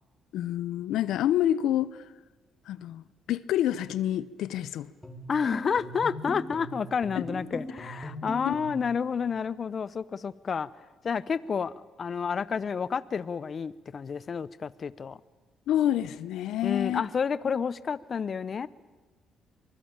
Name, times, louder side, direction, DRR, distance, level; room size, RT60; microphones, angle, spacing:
voice 1, 0.3-2.0 2.7-4.9 7.1-7.2 8.4-8.6 15.7-17.0, left 12 dB, 80° left, 0.8 m, -28 dB
sound 1, 5.0-8.9, left 1 dB, 10° left, 4.9 m, -39 dB
voice 2, 5.3-10.7 11.0-11.7 12.0-15.2 16.6-18.7, left 6 dB, 45° left, 0.8 m, -30 dB
24.5 x 20.0 x 8.9 m
cardioid pair, 85°, 0 cm